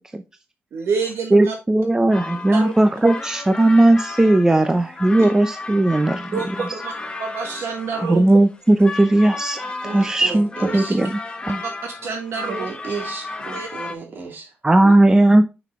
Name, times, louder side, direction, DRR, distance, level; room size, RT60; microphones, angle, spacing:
voice 1, 0.7-1.5 2.5-2.7 5.2-5.3 6.3-6.9 7.2-8.2 11.8-12.7 13.5-13.7 14.8-14.9, right 5 dB, 75° right, 3 dB, 1.5 m, -27 dB
voice 2, 1.3-6.4 8.0-11.2 11.5-11.6 14.6-15.5, right 2 dB, 15° right, 8 dB, 0.5 m, -17 dB
sound 1, 2.1-13.9, left 3 dB, 20° left, 0.9 m, -34 dB
voice 3, 9.8-11.0 12.5-14.5, right 4 dB, 55° right, -1 dB, 3.0 m, -33 dB
5.8 x 5.6 x 3.5 m, 0.27 s
wide cardioid pair, 125°, 4 cm